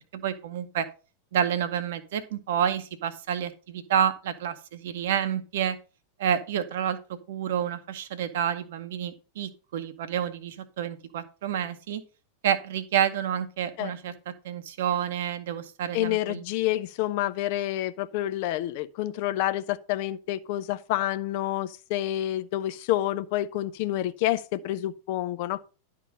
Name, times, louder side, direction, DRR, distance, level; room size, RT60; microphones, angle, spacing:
voice 1, 0.1-0.9 1.3-5.8 6.2-12.0 12.4-16.4, right 9 dB, 55° right, 0.9 m, -29 dB
voice 2, 15.9-25.6, left 14 dB, 50° left, 0.5 m, -28 dB
11.0 x 3.8 x 5.3 m
figure-of-eight pair, 90°, 0 cm